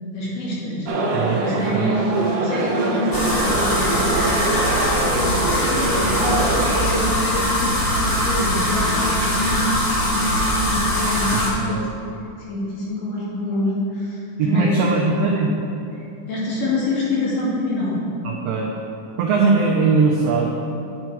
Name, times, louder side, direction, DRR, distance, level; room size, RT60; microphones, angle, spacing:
voice 1, 0.1-0.9 1.4-2.1 2.4-4.6 5.0-11.8 12.5-15.1 16.0-18.0, left 1 dB, 85° left, -7 dB, 3.7 m, -26 dB
Indian Coffeehouse, 0.9-7.0, right 2 dB, 70° right, 1.4 m, -24 dB
voice 2, 1.1-1.9 11.6-11.8 14.4-15.5 18.2-18.7 19.2-20.5, right 4 dB, 90° right, -1 dB, 1.4 m, -20 dB
sound 1, 3.1-11.5, equal, 20° left, 0.6 m, -22 dB
9.7 x 6.0 x 4.6 m, 2.8 s
omnidirectional pair, 3.7 m